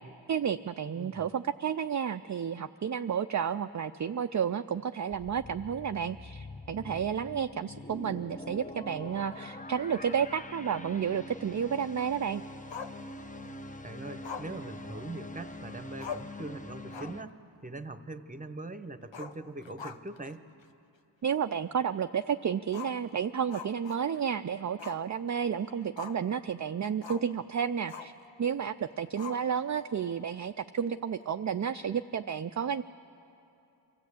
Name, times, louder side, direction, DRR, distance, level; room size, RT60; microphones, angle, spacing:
voice 1, 0.3-12.4 21.2-28.1 28.4-32.8, right 7 dB, 40° right, 8 dB, 0.4 m, -31 dB
voice 2, 1.0-1.3 13.8-20.5, right 2 dB, 20° right, 10 dB, 0.9 m, -42 dB
sound 1, 5.1-17.2, left 1 dB, 15° left, 0.7 m, -44 dB
Growling, 12.7-13.5 14.2-15.5 15.7-15.8 16.0-16.4 16.8-17.3 17.6-17.7 19.0-20.3 20.6-20.7 21.3-21.4 22.7-24.3 24.8-25.1 25.4-26.3 27.0-27.3 27.9-28.2 29.2-29.8, left 6 dB, 70° left, 0.8 m, -43 dB
24.0 x 14.5 x 8.4 m, 2.9 s
wide cardioid pair, 40°, 46 cm